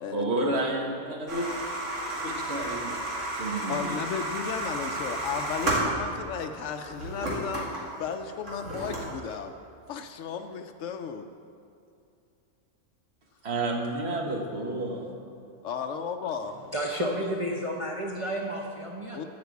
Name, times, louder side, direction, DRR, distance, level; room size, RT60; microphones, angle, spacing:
voice 1, 0.1-1.5 2.1-3.0 3.4-4.0 13.4-15.1, right 2 dB, 60° right, 1 dB, 1.6 m, -30 dB
sound 1, 1.3-6.4 6.8-9.3, right 1 dB, 90° right, 2.3 m, -32 dB
voice 2, 3.7-9.5 9.9-11.3 15.6-16.6 19.1-19.2, left 7 dB, 85° left, 6 dB, 1.0 m, -34 dB
voice 3, 16.7-19.2, equal, 30° right, -3 dB, 0.9 m, -31 dB
11.5 x 5.3 x 8.2 m, 2.6 s
omnidirectional pair, 1.2 m